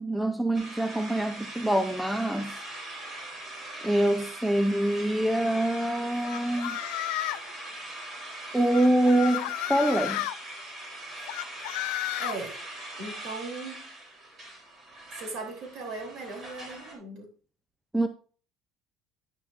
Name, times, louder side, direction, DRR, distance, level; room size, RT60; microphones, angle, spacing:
voice 1, 0.0-2.5 3.8-6.8 8.5-10.2 17.9-18.1, right 1 dB, 5° right, 0.4 m, -25 dB
sound 1, 0.5-16.9, right 2 dB, 25° right, 3.4 m, -41 dB
sound 2, 6.2-7.5 8.7-10.3 11.3-12.4, left 18 dB, 90° left, 0.4 m, -32 dB
voice 2, 12.2-12.6 13.0-13.9 15.1-17.3, right 3 dB, 50° right, 3.2 m, -38 dB
10.0 x 9.6 x 2.5 m
cardioid pair, 175°, 0 cm